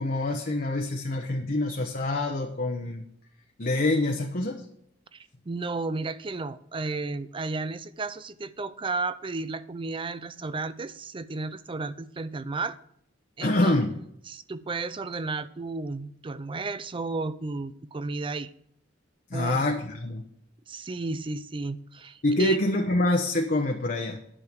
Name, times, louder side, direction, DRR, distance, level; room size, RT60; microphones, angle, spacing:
voice 1, 0.0-3.0 3.6-4.6 13.4-13.9 19.3-20.2 22.2-24.2, left 2 dB, 50° left, 2 dB, 1.0 m, -26 dB
voice 2, 5.1-12.8 13.4-13.7 14.3-18.5 19.3-19.6 20.7-22.6, right 3 dB, 25° right, 14 dB, 0.5 m, -33 dB
10.0 x 6.9 x 6.0 m, 0.71 s
head